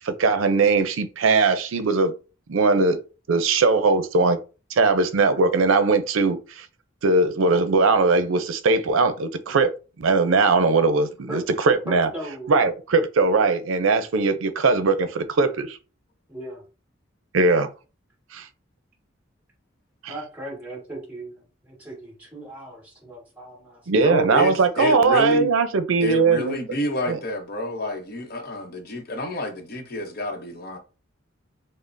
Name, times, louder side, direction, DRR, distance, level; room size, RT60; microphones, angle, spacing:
voice 1, 0.1-2.1 2.5-3.0 3.3-4.4 4.7-6.7 7.0-9.7 10.0-12.1 12.5-15.8 17.3-17.7 18.3-18.5 20.0-20.1 23.9-26.6 27.1-27.2, right 3 dB, 90° right, 0.5 m, -20 dB
voice 2, 11.9-12.6 16.3-16.6 20.1-23.9, right 1 dB, 10° right, 1.6 m, -37 dB
voice 3, 24.0-25.5 26.0-30.8, left 1 dB, 50° left, 0.7 m, -29 dB
5.1 x 2.0 x 2.6 m
head